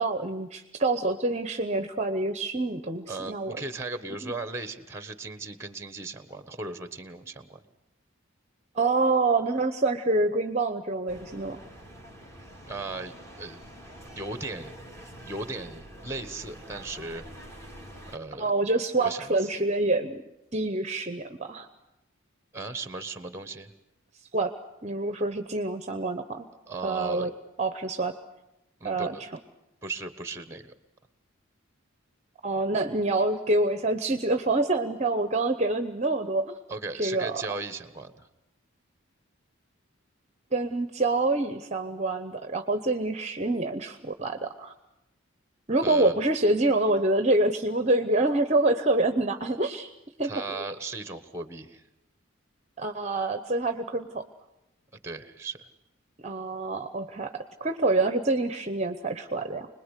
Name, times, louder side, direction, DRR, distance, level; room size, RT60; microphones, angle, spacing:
voice 1, 0.0-3.6 4.2-4.3 8.7-11.6 18.4-20.2 20.5-21.7 24.3-24.5 24.8-26.5 26.8-27.3 27.6-28.2 28.8-29.2 32.4-36.6 36.9-37.4 40.5-44.7 45.7-49.9 50.2-50.6 52.8-54.3 56.2-59.7, right 2 dB, 30° right, 9 dB, 0.9 m, -26 dB
voice 2, 3.1-7.6 12.7-13.6 14.1-14.7 15.2-17.2 18.1-18.5 19.0-19.5 22.5-23.7 26.7-27.3 28.8-29.2 29.8-30.7 36.7-38.3 45.8-46.2 50.2-51.8 55.0-55.7, right 3 dB, 15° right, 11 dB, 1.3 m, -37 dB
sound 1, 11.1-18.2, equal, 15° left, 2.7 m, -46 dB
26.0 x 20.5 x 8.3 m, 0.90 s
head